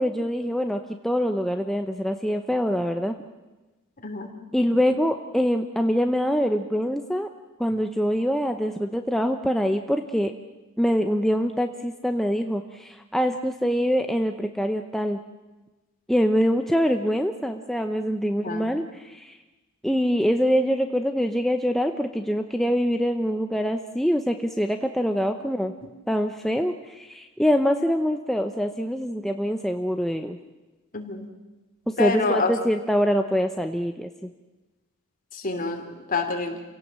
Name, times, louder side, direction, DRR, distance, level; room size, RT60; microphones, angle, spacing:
voice 1, 0.0-3.1 4.5-7.3 7.6-10.3 10.8-15.2 16.1-19.4 19.8-25.7 26.1-30.4 32.0-34.3, equal, ahead, 5 dB, 0.8 m, -24 dB
voice 2, 30.9-31.3 32.0-32.5 35.3-36.6, left 3 dB, 40° left, 5 dB, 2.9 m, -27 dB
28.0 x 17.5 x 7.5 m, 1.1 s
head